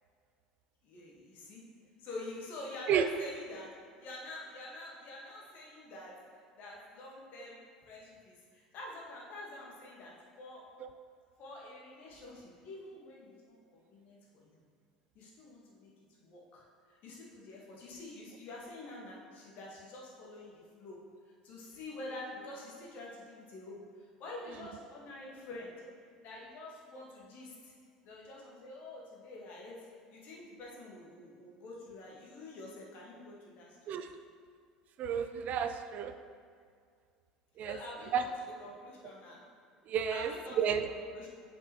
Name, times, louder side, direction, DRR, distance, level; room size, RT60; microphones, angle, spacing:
voice 1, 0.8-1.7 2.0-10.7 11.4-14.6 15.1-15.9 16.2-25.9 26.2-27.7 28.0-33.9 37.6-38.3 38.6-39.5 40.1-40.6 40.9-41.3, left 2 dB, 55° left, -3 dB, 1.7 m, -47 dB
voice 2, 35.0-36.1 37.6-37.7 38.1-38.2 39.9-40.3 40.6-40.9, right 8 dB, 45° right, 9 dB, 0.4 m, -31 dB
8.0 x 5.2 x 3.1 m, 2.1 s
hypercardioid pair, 70°, 4 cm